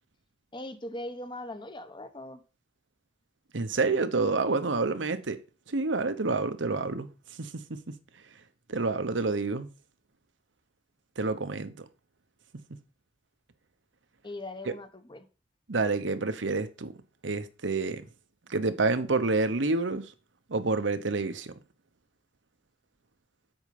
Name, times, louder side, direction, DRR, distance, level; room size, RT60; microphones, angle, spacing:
voice 1, 0.5-2.4 14.2-15.3, left 1 dB, 25° left, 1.0 m, -40 dB
voice 2, 3.5-5.4 5.7-7.1 7.4-8.0 8.7-9.7 11.2-11.8 12.7-12.8 14.7-14.8 15.7-16.9 17.2-18.0 18.5-20.1 20.5-21.6, right 3 dB, 80° right, 1.0 m, -28 dB
8.0 x 5.5 x 5.3 m
head